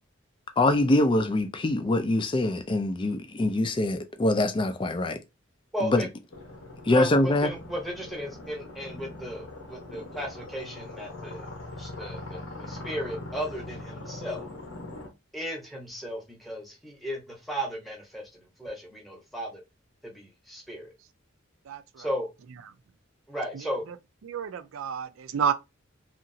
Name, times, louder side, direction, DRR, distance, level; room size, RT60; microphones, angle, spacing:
voice 1, 0.6-5.2 5.8-6.0 6.9-7.5, left 2 dB, 25° left, 0.3 m, -24 dB
voice 2, 5.7-6.1 6.9-11.5 11.8-14.5 15.3-19.6 20.0-20.9 22.0-22.3 23.3-23.8, equal, ahead, 0.9 m, -35 dB
sound 1, 6.3-15.1, left 2 dB, 80° left, 0.9 m, -41 dB
voice 3, 21.7-22.1 22.6-22.7 23.5-24.0 24.2-25.5, right 7 dB, 75° right, 0.4 m, -31 dB
2.9 x 2.5 x 2.6 m
head